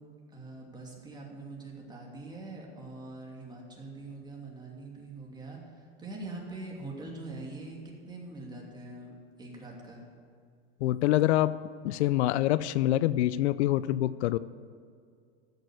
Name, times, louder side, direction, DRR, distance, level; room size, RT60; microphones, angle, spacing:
voice 1, 0.3-10.0, right 2 dB, 15° right, -2 dB, 2.9 m, -43 dB
voice 2, 10.8-11.6 11.8-14.4, left 14 dB, 85° left, 17 dB, 0.5 m, -25 dB
14.5 x 6.8 x 8.2 m, 2.2 s
supercardioid pair, 130°, 33 cm